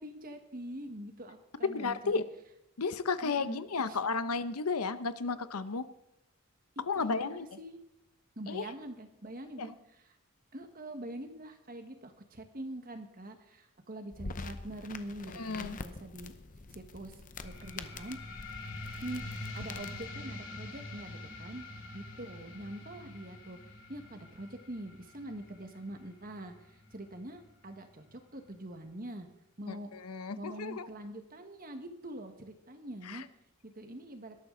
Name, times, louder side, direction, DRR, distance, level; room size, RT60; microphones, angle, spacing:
voice 1, 0.0-2.2 3.2-4.0 6.9-7.8 8.4-10.2 10.5-16.3 16.7-18.2 19.0-21.6 21.9-23.6 23.9-26.5 26.9-29.3 29.6-29.9 30.4-33.2 33.6-34.3, right 1 dB, 40° right, 6 dB, 1.6 m, -44 dB
voice 2, 1.7-2.2 2.8-5.8 6.9-7.5 8.5-8.6 9.6-9.7 15.4-15.8 29.7-30.9 33.1-33.2, left 4 dB, 80° left, 13 dB, 0.8 m, -33 dB
sound 1, 14.1-20.1, left 3 dB, 35° left, 0.8 m, -45 dB
sound 2, 17.4-28.5, left 2 dB, 55° left, 2.9 m, -46 dB
18.5 x 13.0 x 3.9 m, 0.84 s
head